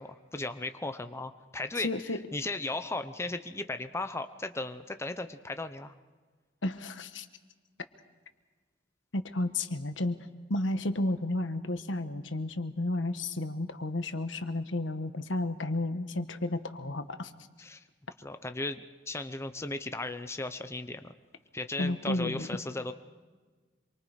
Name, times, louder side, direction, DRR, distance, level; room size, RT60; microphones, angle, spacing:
voice 1, 0.0-5.9 17.6-17.8 18.2-21.1 21.5-22.9, left 2 dB, 15° left, 8 dB, 0.7 m, -36 dB
voice 2, 1.8-2.2 6.6-7.3 9.1-10.2 10.5-17.3 21.8-22.5, left 2 dB, 75° left, 9 dB, 1.3 m, -32 dB
27.0 x 24.0 x 5.0 m, 1.4 s
head